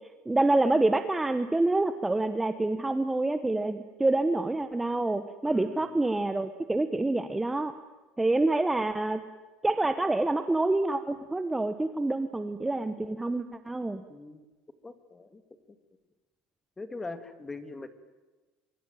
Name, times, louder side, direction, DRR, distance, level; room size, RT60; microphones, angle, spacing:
voice 1, 0.3-7.7 8.2-9.2 9.6-14.0, right 2 dB, 10° right, 10 dB, 1.1 m, -27 dB
voice 2, 5.4-5.9 14.1-14.4 14.8-15.4 16.8-17.9, left 3 dB, 15° left, 11 dB, 2.3 m, -41 dB
25.0 x 24.0 x 9.1 m, 1.2 s
cardioid pair, 155°, 2 cm